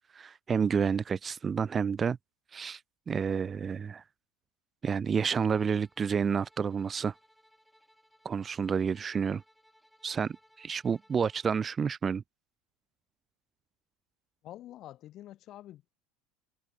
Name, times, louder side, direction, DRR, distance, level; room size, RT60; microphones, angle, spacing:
voice 1, 0.1-2.2 2.5-2.8 3.1-4.0 4.8-7.1 8.2-9.4 10.0-12.2, right 6 dB, 30° right, 1.0 m, -29 dB
Bowed string instrument, 5.5-11.7, equal, ahead, 6.3 m, -64 dB
voice 2, 14.4-15.9, left 13 dB, 50° left, 5.1 m, -47 dB
hypercardioid pair, 80°, 0 cm